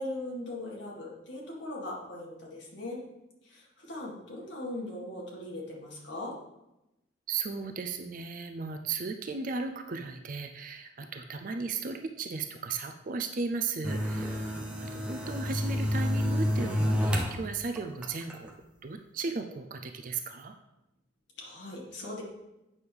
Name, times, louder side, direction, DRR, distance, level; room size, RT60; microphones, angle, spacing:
voice 1, 0.0-3.0 3.4-6.3 21.4-22.2, left 1 dB, 65° left, -3 dB, 2.0 m, -39 dB
voice 2, 7.3-14.4 14.8-18.5 18.8-20.5, right 4 dB, 45° right, 6 dB, 0.4 m, -35 dB
sound 1, 13.8-17.4 17.8-18.5, equal, 5° right, 0.8 m, -29 dB
8.5 x 6.2 x 3.5 m, 0.93 s
head